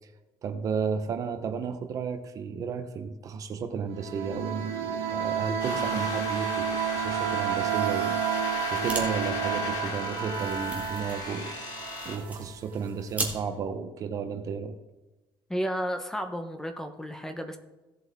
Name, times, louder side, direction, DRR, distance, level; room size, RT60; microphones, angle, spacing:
voice 1, 0.4-11.5 12.0-14.8, right 6 dB, 40° right, 9 dB, 0.8 m, -33 dB
sound 1, 3.9-12.5, right 9 dB, 75° right, 2.2 m, -31 dB
sound 2, 5.6-12.2, left 4 dB, 50° left, 2.4 m, -36 dB
sound 3, 8.6-9.1 9.4-9.5 9.7-13.4, right 3 dB, 15° right, 1.9 m, -38 dB
voice 2, 15.5-17.6, equal, 5° left, 6 dB, 0.8 m, -32 dB
16.5 x 7.6 x 3.5 m, 1.1 s
cardioid pair, 160°, 9 cm